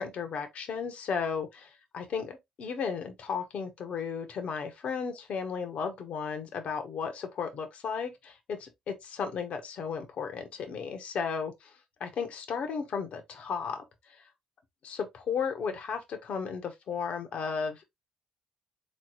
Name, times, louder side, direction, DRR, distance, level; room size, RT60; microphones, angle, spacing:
voice 1, 0.0-11.7 12.0-13.8 14.8-17.9, left 6 dB, 60° left, 1.1 m, -34 dB
3.8 x 3.2 x 3.0 m
supercardioid pair, 55°, 2 cm